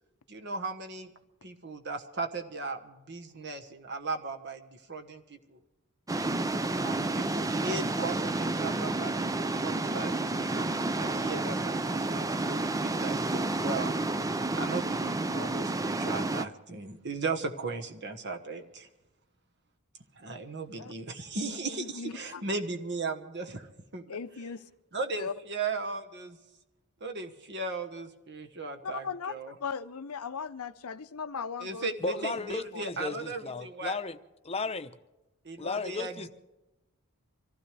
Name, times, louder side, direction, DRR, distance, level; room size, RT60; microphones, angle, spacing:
voice 1, 0.3-1.1 1.4-5.6 6.8-13.9 14.3-18.9 20.1-24.2 24.9-26.4 27.0-29.5 31.6-34.0 35.4-36.3, right 3 dB, 50° right, 5 dB, 1.3 m, -37 dB
sound 1, 6.1-16.4, right 2 dB, 15° right, 0.4 m, -30 dB
voice 2, 21.4-22.4 24.1-24.6 25.2-25.3 28.8-29.3 29.6-32.4 32.7-33.1, left 5 dB, 80° left, 11 dB, 0.7 m, -38 dB
voice 3, 32.0-34.2 34.4-34.9 35.6-36.3, left 3 dB, 25° left, 9 dB, 0.8 m, -34 dB
25.0 x 15.5 x 3.4 m, 0.98 s
head